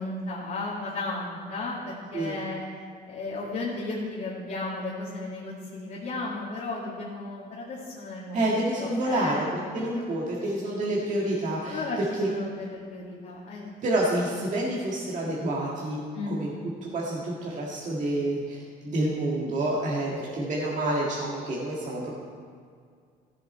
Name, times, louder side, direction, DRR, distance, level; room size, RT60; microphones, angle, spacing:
voice 1, 0.0-2.6 3.1-8.5 8.8-10.0 11.6-13.7 16.1-16.4, left 2 dB, 50° left, -7 dB, 2.2 m, -34 dB
voice 2, 8.3-9.5 9.7-11.8 12.2-12.3 13.8-16.0 16.3-16.5 16.8-22.1, right 1 dB, 45° right, -5 dB, 1.8 m, -28 dB
14.5 x 7.7 x 4.3 m, 2.1 s
cardioid pair, 110°, 17 cm